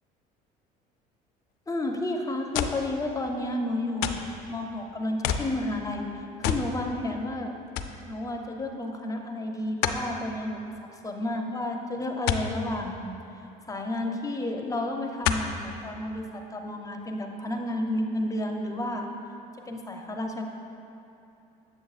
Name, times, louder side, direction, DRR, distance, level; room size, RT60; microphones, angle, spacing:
voice 1, 1.7-4.2 4.5-7.5 8.1-10.6 11.0-13.1 13.7-19.1 19.7-20.4, left 1 dB, 20° left, 3 dB, 0.5 m, -31 dB
sound 1, 2.5-2.9 4.0-4.3 5.2-5.5 6.4-6.7 7.1-7.2 7.8-8.0 9.8-10.1 12.3-12.5 14.0-14.1 15.2-15.6 16.3-16.4, left 8 dB, 75° left, 0.4 m, -28 dB
7.9 x 6.9 x 2.4 m, 2.8 s
cardioid pair, 105°, 17 cm